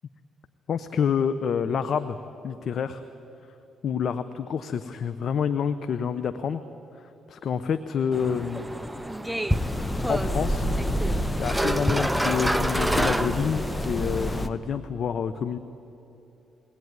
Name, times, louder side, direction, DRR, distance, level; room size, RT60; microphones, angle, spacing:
voice 1, 0.7-2.2 2.4-3.0 3.8-6.6 7.3-8.7 10.1-10.7 11.4-15.6, left 7 dB, 60° left, 10 dB, 0.8 m, -28 dB
sound 1, 8.1-13.9, right 1 dB, 5° right, 0.8 m, -28 dB
sound 2, 9.5-14.5, equal, 15° left, 1.2 m, -28 dB
21.5 x 18.5 x 9.5 m, 3.0 s
cardioid pair, 90°, 0 cm